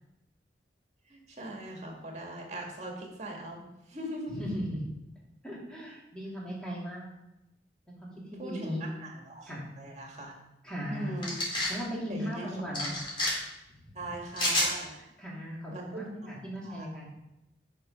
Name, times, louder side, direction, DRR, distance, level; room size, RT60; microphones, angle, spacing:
voice 1, 1.1-4.5 8.4-10.4 10.9-11.4 12.1-12.5 14.0-14.9 15.7-16.0 16.6-16.9, right 1 dB, 40° right, 0 dB, 1.9 m, -40 dB
voice 2, 4.3-4.8 5.4-7.1 7.9-8.8 9.4-9.6 10.6-11.2 11.7-12.9 15.0-17.1, equal, 5° left, -6 dB, 2.8 m, -38 dB
sound 1, 11.2-11.7 12.7-13.3 14.3-14.7, left 1 dB, 30° left, 3.1 m, -28 dB
8.6 x 5.9 x 5.2 m, 0.90 s
head